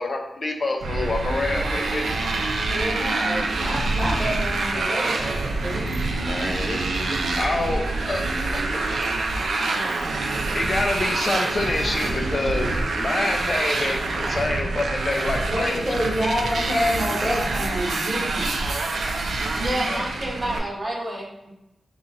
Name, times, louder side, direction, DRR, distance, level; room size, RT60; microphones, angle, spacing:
voice 1, 0.0-2.2 6.3-8.2 8.5-9.1 10.5-15.9 16.2-16.3 19.9-20.1, left 2 dB, 35° left, 3 dB, 0.5 m, -27 dB
Motorcycle, 0.8-20.6, right 3 dB, 80° right, 0.5 m, -26 dB
voice 2, 2.7-5.8 15.5-18.6, equal, 10° left, -4 dB, 1.2 m, -27 dB
voice 3, 19.6-21.5, right 1 dB, 30° right, -3 dB, 0.8 m, -29 dB
4.0 x 2.4 x 3.9 m, 0.90 s
wide cardioid pair, 150°, 0 cm